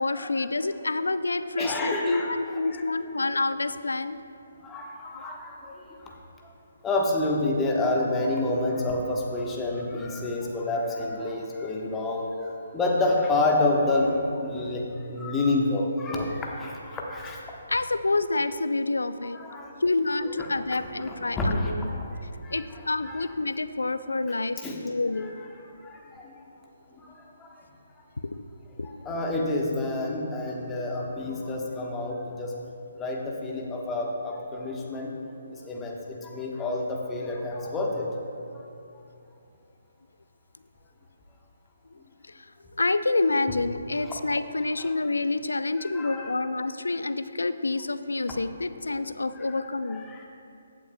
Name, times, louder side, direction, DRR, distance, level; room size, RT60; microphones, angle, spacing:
voice 1, 0.0-4.2 5.1-5.2 17.7-19.4 19.8-21.9 22.5-24.6 24.8-25.3 28.2-28.5 28.8-29.2 41.9-50.0, left 3 dB, 75° left, 13 dB, 0.4 m, -28 dB
voice 2, 1.6-2.3 2.7-2.8 4.6-6.1 6.8-17.4 19.3-19.7 21.0-22.6 23.0-23.2 24.6-24.8 25.2-25.3 25.8-26.3 26.9-27.1 27.4-27.6 29.0-32.5 33.0-35.1 35.5-38.1 45.8-46.3 49.4-50.3, left 2 dB, 15° left, -1 dB, 1.1 m, -29 dB
15.0 x 8.4 x 2.2 m, 2.6 s
figure-of-eight pair, 140°, 0 cm